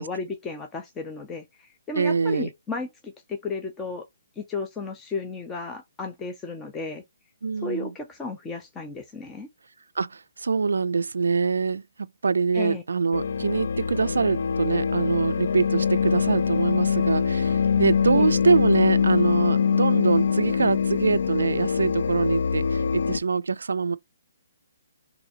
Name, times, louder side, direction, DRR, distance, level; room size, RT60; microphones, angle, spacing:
voice 1, 0.0-4.1 4.4-7.0 7.6-9.5 12.5-12.8 18.1-18.3, left 3 dB, 15° left, 0.6 m, -34 dB
voice 2, 1.9-2.5 7.4-7.9 10.0-24.0, right 4 dB, 85° right, 0.3 m, -24 dB
sound 1, 13.1-23.2, left 6 dB, 70° left, 0.4 m, -24 dB
4.0 x 2.7 x 2.7 m
hypercardioid pair, 150°, 0 cm